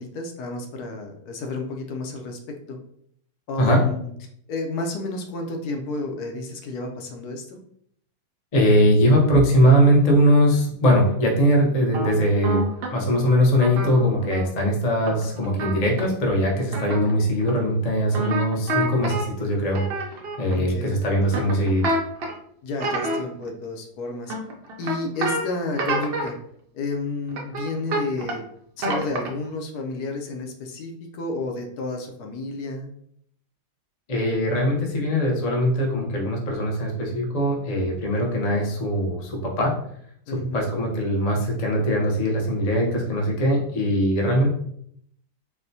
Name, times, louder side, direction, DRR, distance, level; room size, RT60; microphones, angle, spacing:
voice 1, 0.0-2.8 3.5-4.1 4.5-7.6 20.5-21.0 22.6-24.3 24.8-26.4 26.7-28.4 28.8-32.9 40.3-40.6, left 2 dB, 75° left, 3 dB, 1.1 m, -31 dB
voice 2, 8.5-12.6 12.9-19.8 20.4-21.9 34.1-39.7 40.3-44.5, equal, 45° left, -1 dB, 0.5 m, -21 dB
sound 1, 11.9-12.9 13.5-14.5 15.0-16.0 16.7-17.1 17.4-17.5 18.1-19.2 19.7-20.5 21.3-22.3 22.8-23.5 24.3-25.4 25.7-26.3 27.3-28.4 28.8-29.5, right 1 dB, 75° right, 0.5 m, -27 dB
4.2 x 2.1 x 2.6 m, 0.68 s
omnidirectional pair, 1.7 m